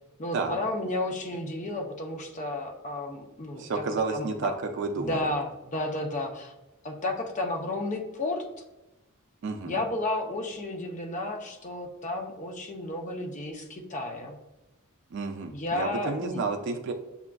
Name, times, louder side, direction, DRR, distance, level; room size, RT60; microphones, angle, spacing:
voice 1, 0.2-3.6 4.1-4.5 5.0-6.5 6.8-8.4 9.6-14.4 15.5-16.4, left 2 dB, 35° left, 3 dB, 0.5 m, -32 dB
voice 2, 3.6-5.2 9.4-9.8 15.1-16.9, right 4 dB, 55° right, 4 dB, 0.3 m, -31 dB
6.8 x 2.4 x 2.2 m, 1.0 s
head